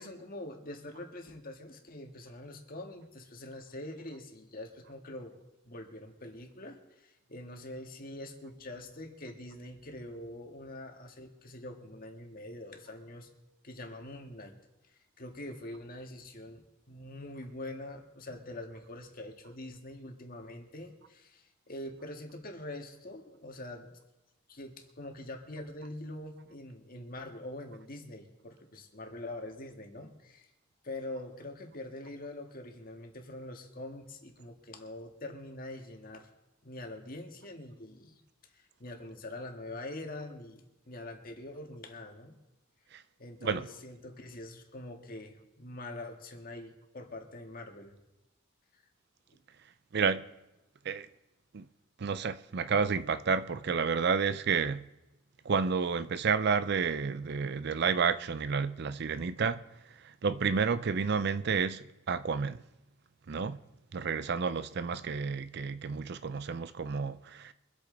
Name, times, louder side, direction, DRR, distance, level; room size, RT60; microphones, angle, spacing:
voice 1, 0.0-5.3 5.7-13.3 13.6-14.6 15.2-23.9 24.5-30.5 30.8-36.3 36.6-38.2 38.5-42.4 43.2-48.0, left 1 dB, 45° left, 1.8 m, -44 dB
voice 2, 49.9-50.3 50.8-51.1 51.5-51.6 52.0-54.8 55.4-59.6 60.2-62.6 63.3-63.6 63.9-67.5, right 5 dB, 55° right, 0.5 m, -30 dB
24.0 x 8.4 x 3.9 m
head